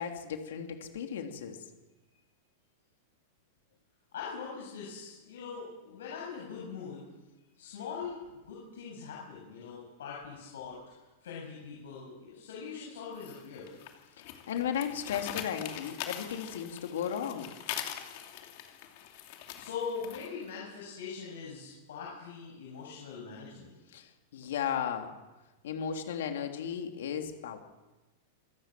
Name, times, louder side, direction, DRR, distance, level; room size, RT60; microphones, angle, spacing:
voice 1, 0.0-1.6 14.5-17.5 23.9-25.1 25.6-27.6, left 8 dB, 70° left, 4 dB, 3.1 m, -35 dB
voice 2, 4.1-7.1 7.6-10.8 11.2-13.7 19.5-23.7, left 6 dB, 90° left, -4 dB, 7.7 m, -42 dB
sound 1, 13.2-20.5, left 11 dB, 40° left, 2.7 m, -42 dB
26.0 x 16.5 x 7.6 m, 1.1 s
supercardioid pair, 180°, 0 cm